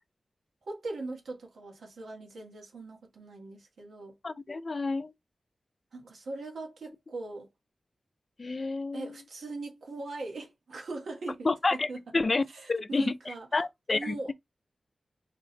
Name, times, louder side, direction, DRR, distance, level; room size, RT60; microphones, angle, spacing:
voice 1, 0.7-4.1 5.9-7.5 8.9-11.5 11.9-12.0 12.5-13.5 13.9-14.3, right 3 dB, 90° right, 1.2 m, -40 dB
voice 2, 4.2-5.1 8.4-9.1 11.4-12.4 12.7-14.3, left 3 dB, 45° left, 0.4 m, -29 dB
3.6 x 2.1 x 3.9 m
wide cardioid pair, 70°, 0 cm